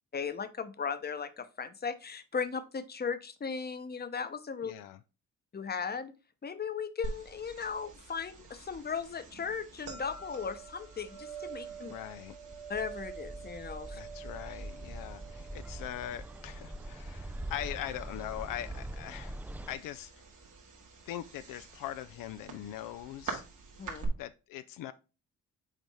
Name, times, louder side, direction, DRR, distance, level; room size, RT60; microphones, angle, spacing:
voice 1, 0.1-4.7 5.5-6.1 6.4-11.9 12.7-14.0 23.8-24.1, left 6 dB, 30° left, 0.8 m, -37 dB
voice 2, 4.6-5.0 11.8-12.4 13.9-19.4 19.7-20.3 21.1-23.4 24.2-24.9, left 12 dB, 80° left, 0.5 m, -41 dB
sound 1, 7.0-24.1, right 5 dB, 70° right, 2.0 m, -46 dB
Bird, 12.5-19.7, right 1 dB, 5° right, 0.3 m, -43 dB
7.3 x 4.1 x 3.5 m
supercardioid pair, 65°, 33 cm